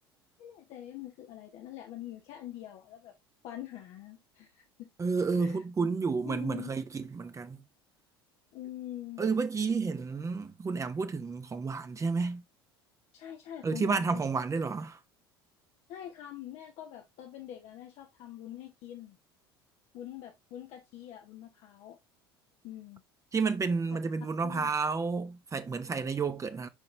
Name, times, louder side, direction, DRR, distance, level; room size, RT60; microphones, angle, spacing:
voice 1, 0.4-3.1 3.4-4.9 5.4-5.6 6.2-6.7 8.5-9.2 13.1-14.2 15.9-19.2 19.9-22.0 22.6-23.0 24.4-24.7, left 12 dB, 55° left, 1.1 m, -44 dB
voice 2, 5.0-7.6 9.2-12.4 13.6-15.0 23.3-26.7, right 4 dB, 25° right, 0.9 m, -31 dB
6.4 x 5.4 x 3.2 m
hypercardioid pair, 65°, 13 cm